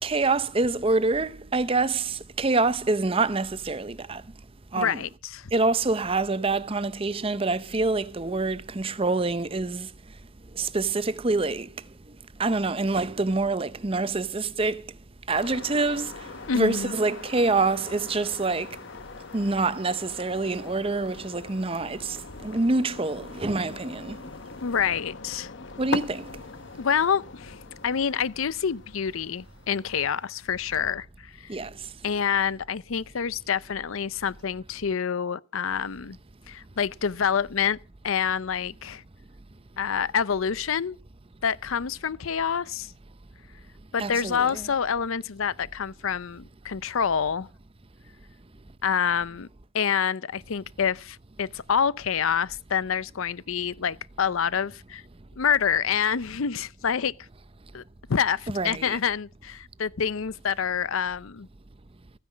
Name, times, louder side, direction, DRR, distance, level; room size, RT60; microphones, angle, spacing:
voice 1, 0.0-4.2 4.7-5.0 5.5-9.9 10.6-11.7 12.4-14.8 15.3-16.1 16.5-18.8 19.3-24.2 25.8-26.2 31.5-31.7 44.0-44.7 58.5-59.0, right 3 dB, 25° right, 0.6 m, -26 dB
voice 2, 4.7-5.5 16.5-16.9 24.6-25.5 26.8-27.6 27.8-31.6 32.0-36.2 36.5-37.8 38.0-39.0 39.8-41.0 41.4-42.9 43.9-47.5 48.8-49.5 49.7-55.0 55.4-57.1 57.7-57.8 58.1-61.5, left 7 dB, 80° left, 0.6 m, -27 dB
sound 1, 15.3-30.9, left 3 dB, 60° left, 0.9 m, -41 dB
15.0 x 9.7 x 6.1 m
head